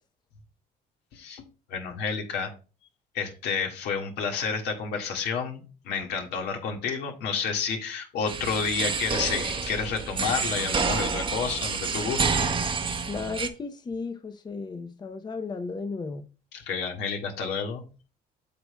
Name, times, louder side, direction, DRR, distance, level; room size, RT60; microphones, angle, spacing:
voice 1, 1.1-1.4 1.7-2.5 3.1-12.4 16.5-17.8, left 5 dB, 80° left, 1.8 m, -30 dB
sound 1, 8.3-13.5, right 5 dB, 30° right, 0.9 m, -28 dB
voice 2, 13.1-16.3, left 4 dB, 25° left, 0.7 m, -34 dB
9.0 x 6.8 x 2.2 m
cardioid pair, 110°, 17 cm